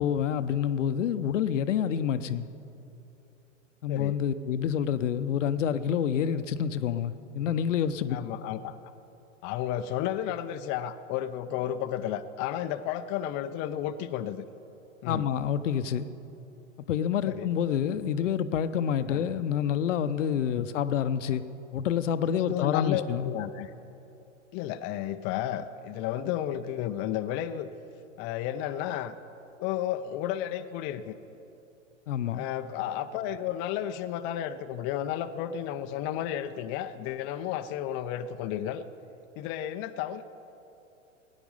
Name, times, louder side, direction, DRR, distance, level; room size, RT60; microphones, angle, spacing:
voice 1, 0.0-2.5 3.8-8.2 15.1-16.1 16.9-21.4 21.7-23.3 32.1-32.5, left 8 dB, 70° left, 12 dB, 0.7 m, -28 dB
voice 2, 3.9-4.2 8.1-8.8 9.4-14.4 15.0-15.3 17.2-17.5 19.1-19.2 20.6-20.7 22.4-23.7 24.5-27.7 28.2-29.1 29.6-31.1 32.3-38.8 39.4-40.2, left 11 dB, 30° left, 8 dB, 0.5 m, -32 dB
17.0 x 10.0 x 5.4 m, 2.8 s
hypercardioid pair, 105°, 38 cm